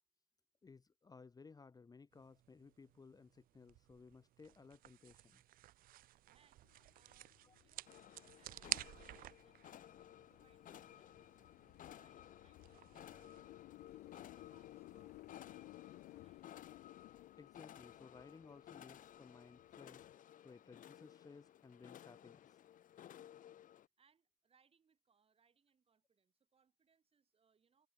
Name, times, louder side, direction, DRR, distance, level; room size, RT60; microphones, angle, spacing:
voice 1, 0.6-5.4 7.4-7.6 17.4-20.1 20.4-22.6, left 4 dB, 20° left, 1.0 m, -59 dB
sound 1, 2.1-13.4, right 15 dB, 60° right, 0.4 m, -52 dB
voice 2, 6.3-6.7 6.9-13.6 13.9-15.2 15.5-16.8 24.0-27.9, right 6 dB, 35° right, 3.3 m, -77 dB
sound 2, 6.6-20.1, left 18 dB, 85° left, 1.7 m, -60 dB
sound 3, 7.9-23.9, left 11 dB, 50° left, 0.9 m, -58 dB
cardioid pair, 110°, 17 cm